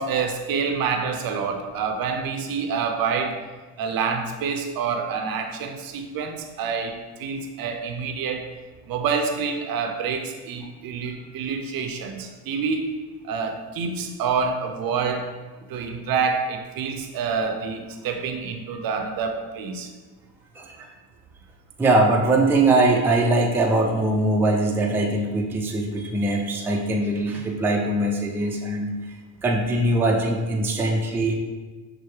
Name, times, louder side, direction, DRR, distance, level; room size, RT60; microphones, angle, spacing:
voice 1, 0.0-3.4 3.8-8.5 8.9-12.9 13.2-15.3 15.7-19.9 30.7-30.8, right 5 dB, 55° right, 5 dB, 0.6 m, -27 dB
voice 2, 20.6-20.9 21.8-28.9 29.4-31.3, right 2 dB, 5° right, 0 dB, 0.4 m, -21 dB
5.6 x 2.1 x 3.2 m, 1.3 s
supercardioid pair, 80°, 42 cm